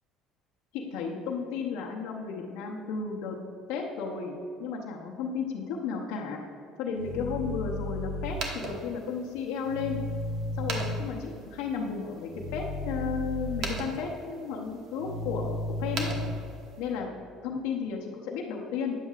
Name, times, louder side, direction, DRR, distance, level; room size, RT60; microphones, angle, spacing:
voice 1, 0.7-3.4 3.7-6.4 6.8-10.0 10.5-16.1 16.8-17.1 17.4-18.9, left 5 dB, 85° left, 0 dB, 0.7 m, -33 dB
sound 1, 7.0-8.3 9.6-11.0 12.3-13.6 15.0-16.3, left 2 dB, 85° right, 1.4 m, -34 dB
sound 2, 8.2-17.0, right 3 dB, 60° right, 1.1 m, -42 dB
9.0 x 7.2 x 2.4 m, 2.5 s
cardioid pair, 110°, 0 cm